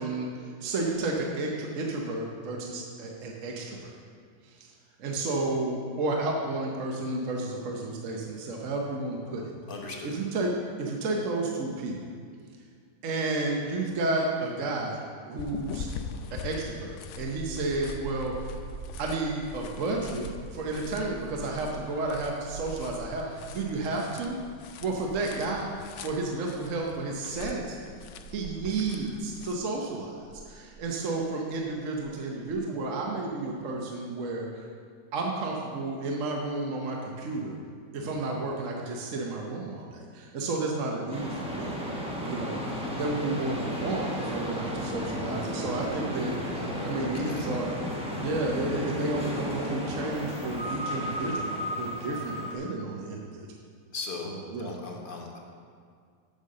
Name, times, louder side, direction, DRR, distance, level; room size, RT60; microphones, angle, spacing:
voice 1, 0.0-4.0 4.4-4.7 5.0-9.5 10.0-12.0 13.0-15.9 16.3-18.5 19.0-20.3 20.5-24.4 24.8-25.7 26.0-27.8 28.3-30.2 30.5-34.7 35.1-37.6 37.9-41.7 42.3-42.6 43.0-46.3 46.8-47.7 48.2-53.5 54.5-54.8, right 2 dB, 55° right, 0 dB, 1.1 m, -31 dB
voice 2, 9.7-10.1 47.0-47.5 53.9-55.4, left 4 dB, 40° left, 0 dB, 1.0 m, -39 dB
sound 1, 15.4-29.6, left 6 dB, 80° left, 0.6 m, -44 dB
sound 2, 17.2-29.8 30.1-31.3 31.5-32.1 32.4-32.7 32.9-33.2 33.4-33.7, right 3 dB, 75° right, 1.2 m, -45 dB
sound 3, 41.1-52.6, equal, 5° right, 0.8 m, -33 dB
7.5 x 5.5 x 6.5 m, 2.1 s
omnidirectional pair, 1.8 m